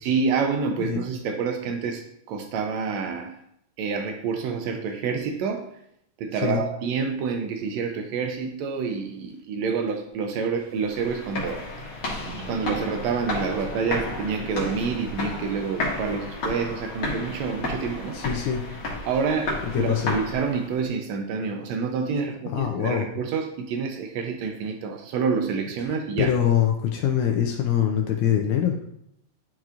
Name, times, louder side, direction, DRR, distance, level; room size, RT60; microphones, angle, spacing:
voice 1, 0.0-3.4 3.8-5.7 6.2-11.6 12.5-18.2 19.0-26.4, right 5 dB, 90° right, 4 dB, 1.5 m, -28 dB
sound 1, 10.5-10.8 11.4-11.8 12.1-16.0 17.1-18.1, right 2 dB, 65° right, 1.4 m, -42 dB
sound 2, 10.8-20.8, left 2 dB, 50° left, 2.0 m, -32 dB
voice 2, 18.1-18.7 19.7-20.2 22.5-23.1 25.9-28.8, left 9 dB, 75° left, 3 dB, 1.8 m, -24 dB
10.5 x 4.5 x 2.5 m, 0.72 s
omnidirectional pair, 3.7 m